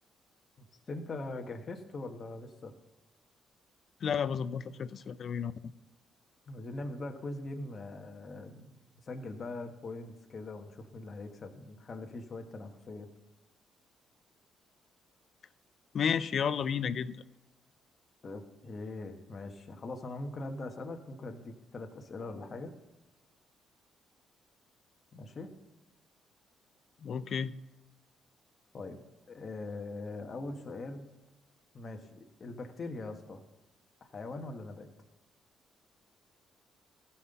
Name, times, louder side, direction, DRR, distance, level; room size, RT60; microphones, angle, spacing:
voice 1, 0.9-2.7 6.5-13.1 18.2-22.7 25.1-25.5 28.7-29.0 29.3-31.1 31.7-33.4 34.1-34.9, left 2 dB, 40° left, 4 dB, 1.5 m, -42 dB
voice 2, 4.0-5.5 15.9-17.1 27.0-27.5, left 7 dB, 55° left, 15 dB, 0.5 m, -32 dB
15.0 x 5.9 x 6.9 m, 0.98 s
cardioid pair, 90°, 0 cm